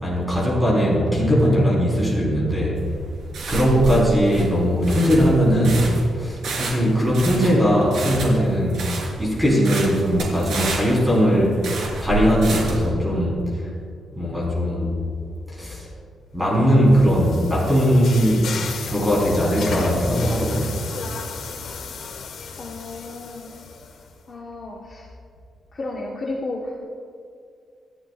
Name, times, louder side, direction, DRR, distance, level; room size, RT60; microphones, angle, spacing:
voice 1, 0.0-2.8 3.5-5.8 6.2-8.8 9.2-11.6 12.0-13.7 14.1-14.9 15.5-15.9 16.3-18.5 18.9-20.7, equal, 5° right, -5 dB, 4.4 m, -19 dB
sound 1, 2.8-12.9, right 3 dB, 80° right, 4.2 m, -29 dB
sound 2, 16.6-24.1, left 5 dB, 60° left, 1.8 m, -35 dB
voice 2, 22.6-23.5 24.3-25.1 25.7-26.8, left 2 dB, 30° left, -4 dB, 1.5 m, -32 dB
26.5 x 14.0 x 2.5 m, 2.3 s
wide cardioid pair, 175°, 0 cm